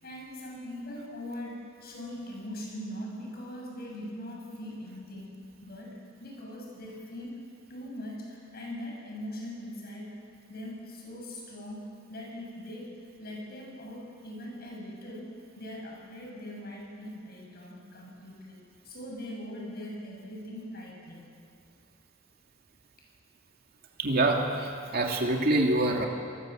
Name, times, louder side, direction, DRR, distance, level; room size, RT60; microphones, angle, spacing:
voice 1, 0.0-5.3 5.6-7.4 7.7-10.2 10.5-21.2, left 1 dB, 50° left, -1 dB, 7.3 m, -41 dB
voice 2, 24.0-26.1, right 2 dB, 50° right, 1 dB, 2.7 m, -25 dB
27.5 x 19.5 x 7.8 m, 2.3 s
head